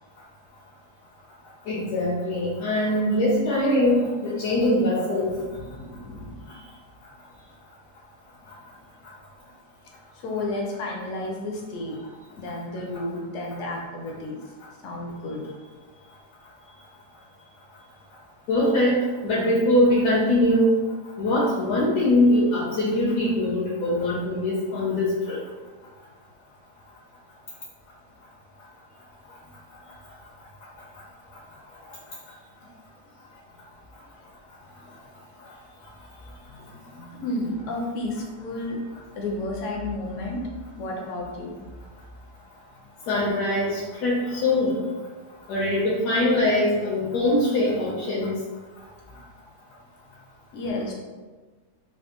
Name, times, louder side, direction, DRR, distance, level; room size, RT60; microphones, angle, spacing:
voice 1, 1.7-5.3 18.5-20.8 21.2-25.4 43.1-44.8 45.5-48.3, left 1 dB, 90° left, -6 dB, 1.2 m, -22 dB
voice 2, 5.4-6.6 10.1-12.0 12.4-14.5 14.8-15.8 16.6-16.9 17.5-17.9 29.8-29.9 33.2-33.4 34.1-34.3 36.0-38.8 39.1-41.6 49.1-49.2 50.5-50.9, left 2 dB, 70° left, -1 dB, 0.7 m, -33 dB
3.3 x 2.3 x 2.9 m, 1.3 s
omnidirectional pair, 1.8 m